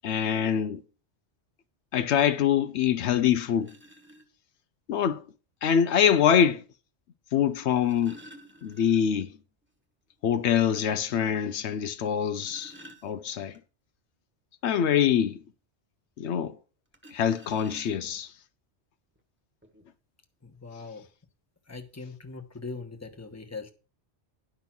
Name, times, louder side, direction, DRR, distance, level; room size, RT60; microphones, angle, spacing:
voice 1, 0.0-0.8 1.9-3.7 4.9-5.2 5.6-6.6 7.3-8.2 8.6-9.3 10.2-12.7 13.0-13.5 14.6-15.4 16.2-16.5 17.1-18.3, left 8 dB, 75° left, 0.9 m, -24 dB
sound 1, 2.9-3.0 3.6-4.3 5.6-5.7 7.5-9.3 9.6-9.7 10.1-10.2 10.7-10.8 12.1-13.6 16.9-18.3 19.2-19.3 19.6-19.8, equal, 10° right, 1.4 m, -51 dB
voice 2, 20.4-21.1 21.7-23.7, left 4 dB, 15° left, 1.1 m, -40 dB
10.5 x 5.4 x 6.0 m
omnidirectional pair, 1.2 m